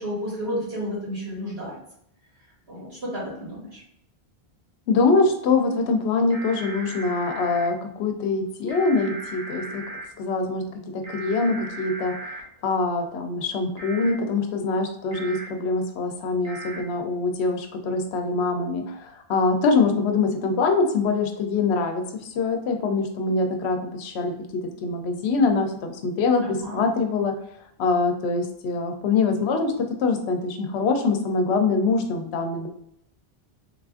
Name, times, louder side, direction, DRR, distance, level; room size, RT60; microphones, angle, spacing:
voice 1, 0.0-1.7 2.7-3.8 26.6-26.8, equal, 70° right, -7 dB, 1.9 m, -31 dB
voice 2, 4.9-9.8 10.2-10.6 10.9-27.3 27.8-32.7, left 4 dB, 85° left, 5 dB, 0.8 m, -24 dB
sound 1, 6.3-7.7 8.7-10.1 11.0-12.4 13.8-14.1 15.1-15.5 16.4-16.8, right 2 dB, 55° right, 0.7 m, -37 dB
3.6 x 2.4 x 2.4 m, 0.73 s
omnidirectional pair, 1.1 m